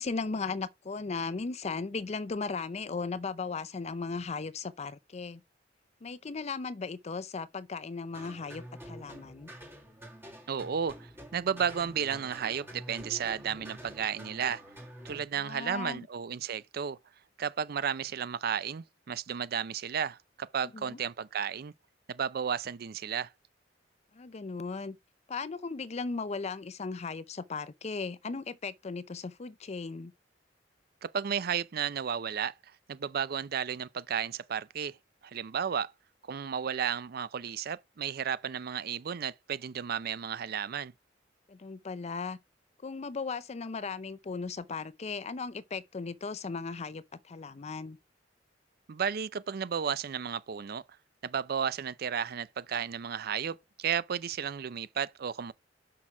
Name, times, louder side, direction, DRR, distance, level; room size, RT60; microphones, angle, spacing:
voice 1, 0.0-5.4 6.0-9.5 15.4-16.0 20.7-21.0 24.1-25.0 25.3-30.1 41.5-42.4 42.8-48.0, left 4 dB, 35° left, 0.5 m, -37 dB
sound 1, 8.1-15.2, equal, 15° right, 1.8 m, -47 dB
voice 2, 10.5-14.6 15.0-17.0 17.4-21.7 22.1-23.3 31.0-35.0 35.2-35.9 36.2-40.9 48.9-50.8 51.2-55.5, right 7 dB, 55° right, 0.4 m, -33 dB
6.2 x 5.7 x 4.9 m
head